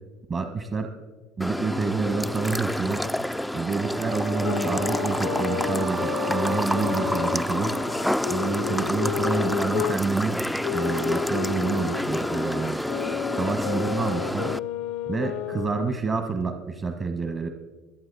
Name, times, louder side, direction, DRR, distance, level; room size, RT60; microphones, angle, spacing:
voice 1, 0.3-0.9 1.4-3.1 3.5-7.8 8.3-10.4 10.7-12.8 13.4-14.5 15.1-17.5, right 4 dB, 35° right, 7 dB, 1.2 m, -28 dB
sound 1, 1.4-14.6, left 1 dB, ahead, 0.3 m, -29 dB
Wind instrument woodwind instrument, 3.8-8.4, right 3 dB, 55° right, 1.4 m, -34 dB
sound 2, 4.4-10.0 10.6-16.1, left 12 dB, 80° left, 0.6 m, -32 dB
22.0 x 8.1 x 4.1 m, 1.2 s
supercardioid pair, 85°, 0 cm